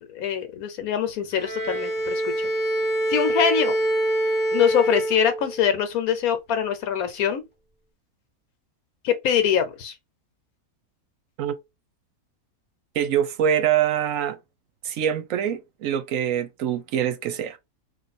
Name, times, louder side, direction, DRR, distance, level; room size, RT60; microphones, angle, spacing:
voice 1, 0.1-2.5 3.1-3.8 4.5-7.4 9.0-9.9, left 8 dB, 80° left, 1.3 m, -23 dB
Bowed string instrument, 1.3-5.7, right 1 dB, 10° right, 0.9 m, -25 dB
voice 2, 12.9-14.4 14.8-17.6, right 9 dB, 70° right, 1.0 m, -24 dB
3.1 x 2.6 x 4.1 m
omnidirectional pair, 1.5 m